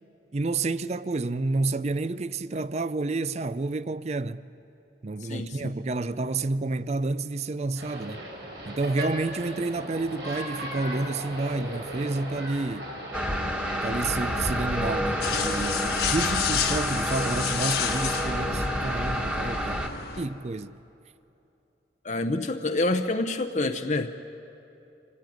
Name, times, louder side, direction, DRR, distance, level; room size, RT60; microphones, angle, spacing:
voice 1, 0.3-4.4 5.0-8.2 8.7-12.9 13.8-19.9 20.2-20.8, right 3 dB, 40° right, 0.5 m, -30 dB
voice 2, 5.2-5.7 22.0-24.2, left 2 dB, 40° left, 0.7 m, -27 dB
sound 1, 7.7-15.8, equal, 85° right, 6.3 m, -38 dB
sound 2, 13.1-19.9, equal, 10° right, 1.5 m, -29 dB
sound 3, 15.2-20.3, left 7 dB, 60° left, 1.5 m, -31 dB
26.0 x 18.0 x 9.3 m
head